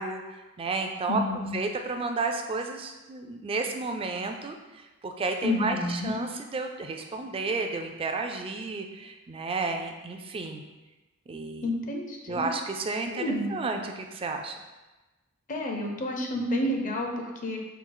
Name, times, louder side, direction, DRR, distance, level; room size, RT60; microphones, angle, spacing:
voice 1, 0.0-10.6 11.3-11.7 12.3-13.2 13.5-14.5, right 3 dB, 25° right, 4 dB, 0.3 m, -32 dB
voice 2, 1.1-1.5 5.4-6.2 11.6-12.5 13.1-13.5 15.5-17.6, left 1 dB, 35° left, 1 dB, 0.5 m, -30 dB
4.4 x 2.4 x 3.8 m, 1.1 s
head